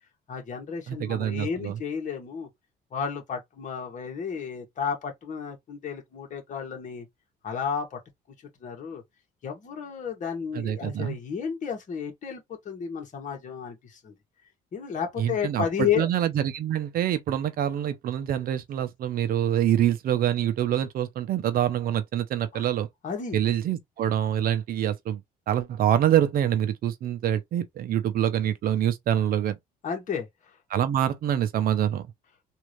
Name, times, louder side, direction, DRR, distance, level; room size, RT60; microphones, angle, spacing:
voice 1, 0.3-2.5 2.9-7.1 7.4-8.0 8.6-9.0 9.4-14.1 14.7-16.1 22.5-22.7 23.0-23.4 29.8-30.3, left 7 dB, 50° left, 1.8 m, -32 dB
voice 2, 0.9-1.8 10.5-11.2 15.2-22.9 23.3-25.2 25.5-29.6 30.7-32.0, right 10 dB, 60° right, 0.7 m, -25 dB
3.6 x 2.8 x 3.2 m
cardioid pair, 110°, 17 cm